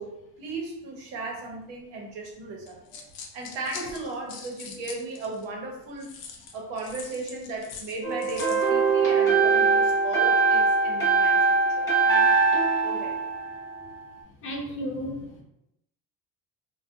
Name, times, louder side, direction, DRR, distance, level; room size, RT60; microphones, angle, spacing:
voice 1, 0.0-3.1 3.3-6.1 6.5-13.2, right 3 dB, 75° right, 0 dB, 0.8 m, -37 dB
sound 1, 2.7-5.4 6.0-8.7, left 6 dB, 80° left, 0.6 m, -43 dB
sound 2, 8.0-14.0, right 4 dB, 10° left, 0.8 m, -22 dB
voice 2, 14.4-15.4, equal, 30° left, 0 dB, 0.4 m, -33 dB
2.5 x 2.2 x 2.4 m, 0.80 s
cardioid pair, 160°, 43 cm